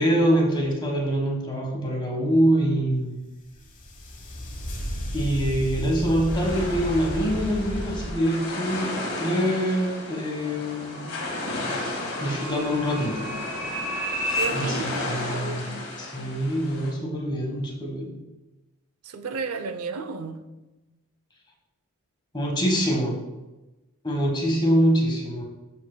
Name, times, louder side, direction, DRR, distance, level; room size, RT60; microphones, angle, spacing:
voice 1, 0.0-3.2 5.1-11.2 11.7-13.3 14.5-18.1 22.3-23.2 24.0-25.4, equal, 20° left, 1.3 m, -25 dB
sound 1, 3.5-8.1, equal, 35° left, 1.0 m, -33 dB
sound 2, 6.3-16.9, left 2 dB, 85° left, 1.8 m, -34 dB
sound 3, 10.1-14.5, equal, 15° right, 2.5 m, -33 dB
voice 2, 14.4-15.9 19.0-20.4, right 4 dB, 85° right, 0.6 m, -33 dB
12.5 x 5.1 x 2.2 m
head